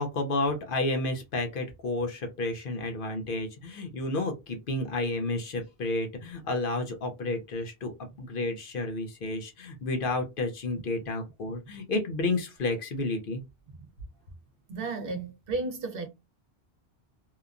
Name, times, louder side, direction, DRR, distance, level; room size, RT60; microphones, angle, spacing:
voice 1, 0.0-7.9 8.2-13.4, left 2 dB, 60° left, 0.8 m, -31 dB
voice 2, 14.7-16.1, right 3 dB, 60° right, 0.9 m, -33 dB
2.8 x 2.2 x 2.4 m
omnidirectional pair, 1.1 m